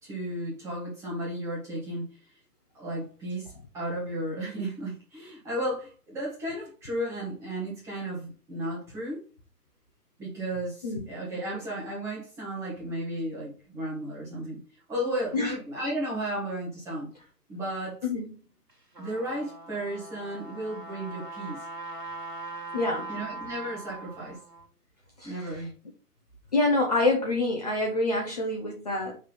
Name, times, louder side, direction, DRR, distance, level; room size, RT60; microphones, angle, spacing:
voice 1, 0.0-2.1 2.7-9.2 10.2-14.6 14.9-17.1 17.5-18.0 19.0-21.6 23.1-24.4 25.2-25.7, right 1 dB, 5° right, -6 dB, 1.2 m, -34 dB
Trumpet, 18.7-24.7, right 2 dB, 75° right, 1.9 m, -41 dB
voice 2, 22.7-23.1 25.2-25.6 26.5-29.2, left 2 dB, 25° left, -1 dB, 0.8 m, -27 dB
5.4 x 3.6 x 5.2 m, 0.36 s
figure-of-eight pair, 140°, 48 cm